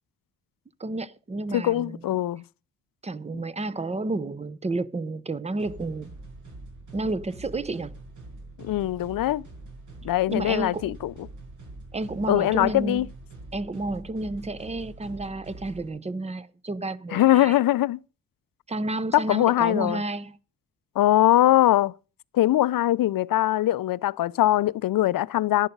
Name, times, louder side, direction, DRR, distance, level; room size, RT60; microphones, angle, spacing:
voice 1, 0.8-2.1 3.0-6.1 6.9-8.0 10.3-10.9 11.9-13.0 13.5-17.6 18.7-20.4, right 2 dB, 20° right, 0.7 m, -31 dB
voice 2, 1.5-2.4 8.6-9.4 10.0-11.1 12.3-13.1 17.1-18.0 19.1-20.0 21.0-21.9 22.3-25.7, left 14 dB, 75° left, 0.5 m, -22 dB
sound 1, 5.6-15.9, right 2 dB, 60° right, 5.3 m, -44 dB
11.0 x 11.0 x 5.3 m
wide cardioid pair, 140°, 35 cm